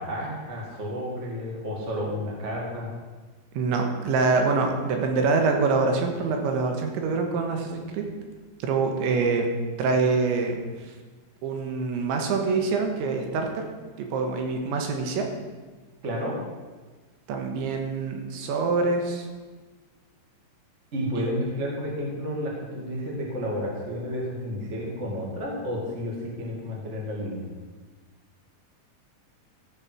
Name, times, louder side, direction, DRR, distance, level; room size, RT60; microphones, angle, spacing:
voice 1, 0.0-3.0 16.0-16.3 20.9-27.4, equal, 35° right, -2 dB, 1.1 m, -31 dB
voice 2, 3.5-8.0 8.6-9.5 9.8-10.9 11.4-13.6 14.0-15.3 17.3-19.3 21.2-21.3, right 4 dB, 80° right, 3 dB, 3.5 m, -25 dB
14.0 x 6.4 x 6.1 m, 1.3 s
omnidirectional pair, 5.4 m